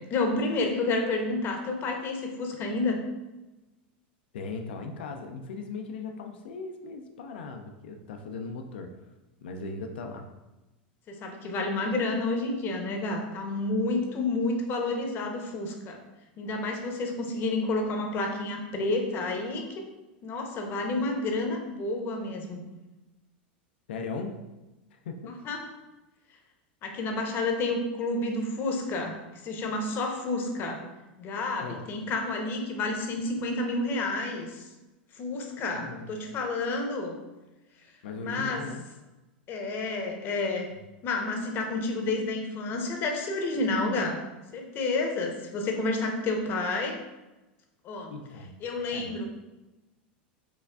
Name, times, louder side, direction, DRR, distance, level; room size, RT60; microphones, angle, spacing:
voice 1, 0.1-3.0 11.1-16.0 16.4-19.8 20.2-22.6 25.3-25.8 26.8-30.8 31.2-34.7 35.1-37.2 38.2-38.6 39.5-40.7 41.0-44.2 44.5-47.0 47.8-48.1 48.6-49.3, left 2 dB, 40° left, 3 dB, 0.7 m, -30 dB
voice 2, 4.3-8.9 9.4-10.3 23.9-24.4 24.9-25.4 31.6-31.8 35.7-36.1 38.0-38.9 48.1-48.5 48.9-49.2, left 4 dB, 75° left, 5 dB, 0.4 m, -38 dB
4.7 x 2.3 x 2.3 m, 1.1 s
hypercardioid pair, 105°, 6 cm